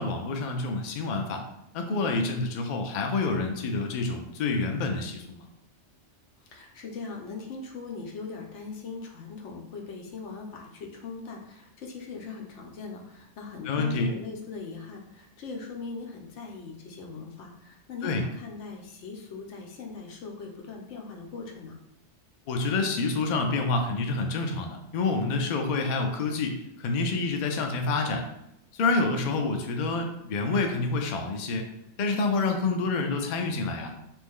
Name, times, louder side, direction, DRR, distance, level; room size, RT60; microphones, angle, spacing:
voice 1, 0.0-1.4 1.7-5.4 13.6-14.1 18.0-18.2 22.5-28.2 28.7-31.7 32.0-33.9, left 3 dB, 55° left, 4 dB, 0.5 m, -28 dB
voice 2, 6.5-21.8, left 4 dB, 85° left, 1 dB, 1.0 m, -40 dB
2.9 x 2.6 x 3.6 m, 0.81 s
omnidirectional pair, 1.2 m